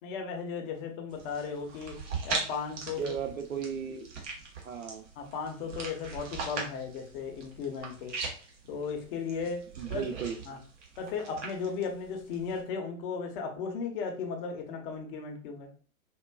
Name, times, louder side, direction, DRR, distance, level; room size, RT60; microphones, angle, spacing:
voice 1, 0.0-2.0 2.2-3.0 5.2-8.1 8.7-9.6 9.9-10.0 10.4-10.6 11.0-15.7, left 5 dB, 40° left, 3 dB, 0.8 m, -36 dB
sound 1, 1.1-12.6, right 4 dB, 55° right, 1.4 m, -40 dB
voice 2, 3.0-4.1 4.6-5.0 9.8-10.4, right 6 dB, 75° right, 6 dB, 0.8 m, -35 dB
4.5 x 2.5 x 2.3 m, 0.42 s
figure-of-eight pair, 105°, 42 cm